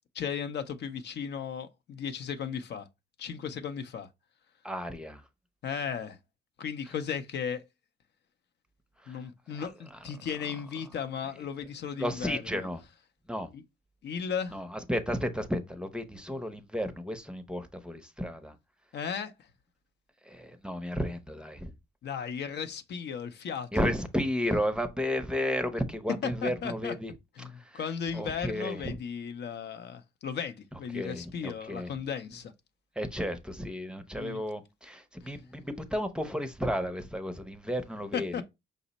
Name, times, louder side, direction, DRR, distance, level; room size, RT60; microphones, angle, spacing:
voice 1, 0.1-2.9 3.2-4.1 5.6-6.2 6.6-7.6 9.1-12.7 13.5-13.6 14.0-14.6 18.9-19.3 22.0-23.9 26.2-26.9 27.4-32.5 34.2-34.4 38.1-38.4, left 7 dB, 60° left, 0.6 m, -36 dB
voice 2, 4.6-5.2 9.6-9.7 12.0-12.8 13.3-13.5 14.5-18.5 20.3-21.7 23.7-27.1 28.1-29.0 30.9-31.9 33.0-38.4, equal, 5° right, 0.6 m, -33 dB
5.1 x 2.0 x 3.9 m
cardioid pair, 90°, 20 cm